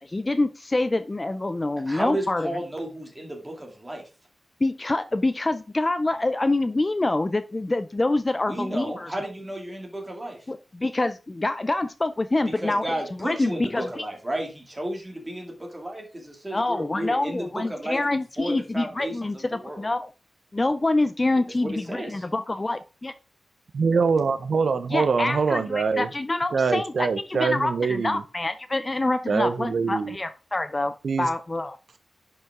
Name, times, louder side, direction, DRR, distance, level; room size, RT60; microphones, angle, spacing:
voice 1, 0.0-2.5 4.6-9.1 10.5-12.9 13.2-14.0 16.5-20.1 20.5-23.1 24.9-31.8, left 2 dB, 20° left, 12 dB, 0.4 m, -26 dB
voice 2, 1.9-4.0 8.4-10.4 12.5-19.9 21.5-22.2, right 1 dB, 15° right, 1 dB, 2.3 m, -33 dB
voice 3, 23.7-26.1 26.5-28.2 29.3-30.1 31.0-31.3, right 5 dB, 65° right, 11 dB, 0.6 m, -24 dB
10.5 x 5.4 x 3.6 m, 0.33 s
wide cardioid pair, 150°, 0 cm